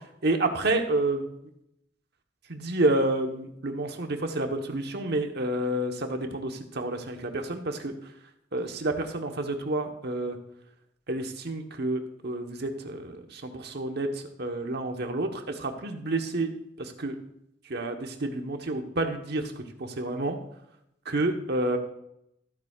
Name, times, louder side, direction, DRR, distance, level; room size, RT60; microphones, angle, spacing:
voice 1, 0.2-1.3 2.5-7.9 8.5-10.4 11.1-14.1 14.4-16.5 16.8-17.2 17.7-19.5 19.8-20.4 21.0-21.8, right 2 dB, 60° right, 4 dB, 1.2 m, -29 dB
15.0 x 9.1 x 2.4 m, 0.79 s
head